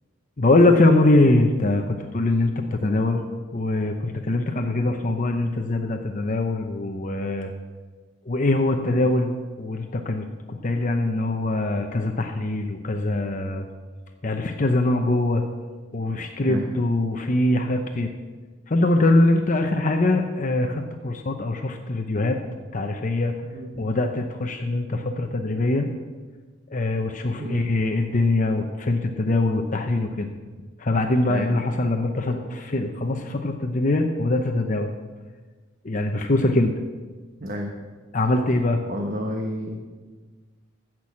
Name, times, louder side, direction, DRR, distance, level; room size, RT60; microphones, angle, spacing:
voice 1, 0.4-3.2 3.5-7.5 8.3-9.3 9.6-13.7 14.2-15.4 15.9-18.1 18.7-22.4 22.7-23.3 23.8-25.9 26.7-30.3 30.8-34.9 35.8-36.7 38.1-38.8, left 2 dB, 40° left, 5 dB, 0.8 m, -22 dB
voice 2, 23.4-23.9 27.4-27.6 31.3-31.5 37.4-37.7 38.8-39.8, equal, 45° right, 1 dB, 1.2 m, -31 dB
15.0 x 6.1 x 7.3 m, 1.4 s
head